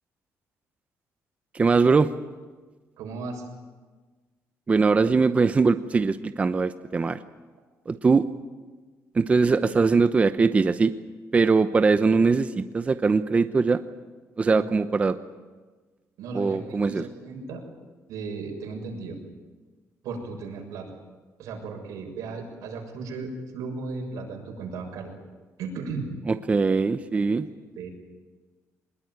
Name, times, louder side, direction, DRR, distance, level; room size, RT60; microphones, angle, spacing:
voice 1, 1.5-2.1 4.7-7.2 7.9-8.2 9.1-10.9 11.3-13.8 14.4-15.2 16.3-17.0 26.3-27.5, right 4 dB, 25° right, 10 dB, 0.8 m, -21 dB
voice 2, 3.0-3.4 14.5-14.7 16.2-17.6 18.1-19.2 20.0-20.9 21.4-25.1 25.6-26.1 27.8-27.9, right 4 dB, 90° right, 2 dB, 6.8 m, -35 dB
23.5 x 20.5 x 9.6 m, 1.3 s
cardioid pair, 135°, 6 cm